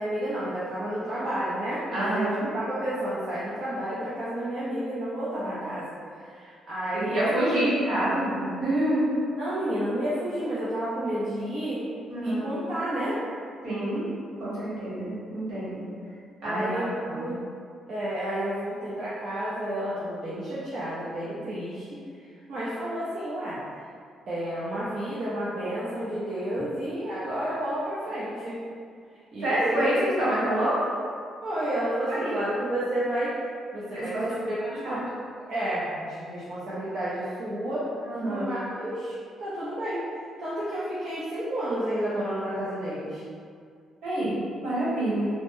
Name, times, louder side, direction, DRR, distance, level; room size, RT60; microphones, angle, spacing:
voice 1, 0.0-7.7 9.4-11.8 12.2-13.2 16.4-17.4 17.9-21.9 22.5-23.6 24.3-28.6 29.3-29.9 31.4-33.3 33.7-35.0 35.5-37.9 38.3-39.1 39.4-40.0 40.4-43.2, right 1 dB, 55° right, -10 dB, 0.6 m, -31 dB
voice 2, 1.9-2.5 5.3-5.5 7.0-9.0 12.1-12.6 13.6-14.0 14.4-15.8 16.4-17.3 29.4-30.8 32.1-32.4 33.9-34.3 34.8-35.0 38.0-38.5 44.0-44.3 44.6-45.3, right 1 dB, 75° right, -9 dB, 1.2 m, -27 dB
3.1 x 2.0 x 3.1 m, 2.2 s
cardioid pair, 90°, 0 cm